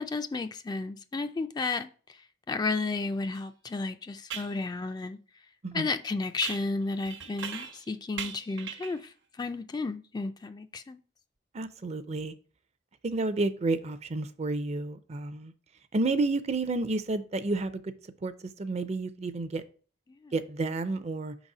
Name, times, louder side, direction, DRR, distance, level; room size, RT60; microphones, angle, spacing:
voice 1, 0.0-5.2 5.7-11.0 20.1-20.3, left 3 dB, 20° left, 0.3 m, -33 dB
sound 1, 3.3-3.4 4.3-4.6 6.4-7.9 8.2-9.1, right 7 dB, 75° right, 0.9 m, -39 dB
voice 2, 11.5-12.3 13.0-15.5 15.9-17.9 18.2-19.6 20.3-21.3, right 3 dB, 35° right, 0.5 m, -30 dB
5.7 x 4.0 x 4.8 m
head